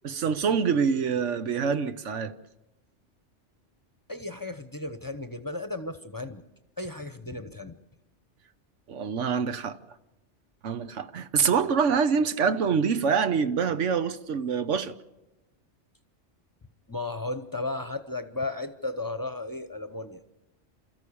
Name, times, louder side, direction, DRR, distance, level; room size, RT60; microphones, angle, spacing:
voice 1, 0.0-2.3 8.9-9.8 10.6-14.9, right 6 dB, 90° right, 1.3 m, -25 dB
voice 2, 4.1-6.4 6.8-7.8 16.9-20.2, left 2 dB, 20° left, 0.8 m, -34 dB
28.5 x 14.0 x 8.6 m
omnidirectional pair, 1.2 m